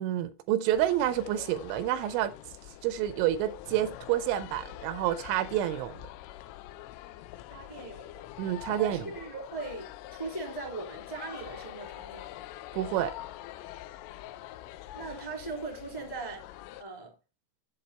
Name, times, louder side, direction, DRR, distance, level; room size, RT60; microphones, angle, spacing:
voice 1, 0.0-2.3 2.8-6.0 8.4-9.1 12.7-13.1, right 12 dB, 80° right, 2.9 m, -28 dB
sound 1, 0.7-16.8, left 14 dB, 85° left, 3.3 m, -45 dB
voice 2, 7.5-8.1 8.4-8.5 8.7-12.4 14.9-16.4 16.8-17.1, right 3 dB, 10° left, 1.6 m, -40 dB
8.7 x 8.2 x 4.3 m
omnidirectional pair, 5.6 m